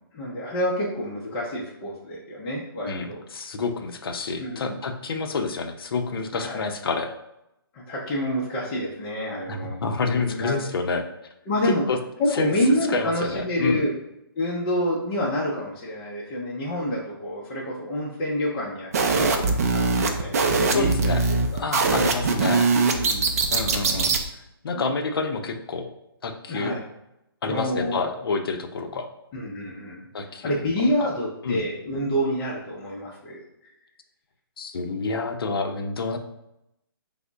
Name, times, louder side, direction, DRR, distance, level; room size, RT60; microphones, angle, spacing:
voice 1, 0.1-3.2 4.4-4.8 6.3-6.7 7.7-9.8 10.1-10.7 11.5-11.8 12.2-13.9 14.4-21.6 22.8-23.3 24.7-24.8 26.5-26.8 27.5-28.0 29.3-30.1 30.4-33.4, equal, 20° left, -6 dB, 0.5 m, -28 dB
voice 2, 2.8-7.1 9.5-11.1 11.6-12.0 12.3-12.5 12.9-13.8 20.7-21.2 21.5-22.7 23.5-25.9 26.2-26.7 27.4-29.1 30.1-30.6 31.0-31.1 31.4-31.6 34.6-36.2, left 4 dB, 70° left, 6 dB, 0.5 m, -28 dB
sound 1, 18.9-24.2, right 4 dB, 40° right, 0.4 m, -22 dB
3.6 x 2.0 x 3.4 m, 0.86 s
hypercardioid pair, 160°, 13 cm